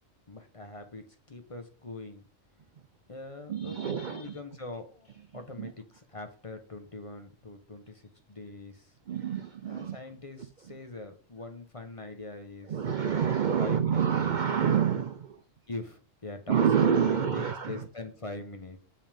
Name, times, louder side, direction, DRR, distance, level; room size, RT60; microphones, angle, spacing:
voice 1, 0.3-2.2 3.1-8.9 9.6-13.2 13.6-14.4 15.7-16.6 17.1-18.8, left 2 dB, 30° left, 0.9 m, -43 dB
voice 2, 3.5-4.4 5.6-5.7 9.1-10.0 12.7-15.4 16.5-17.8, right 7 dB, 65° right, 0.4 m, -27 dB
7.2 x 5.7 x 3.5 m
omnidirectional pair, 1.4 m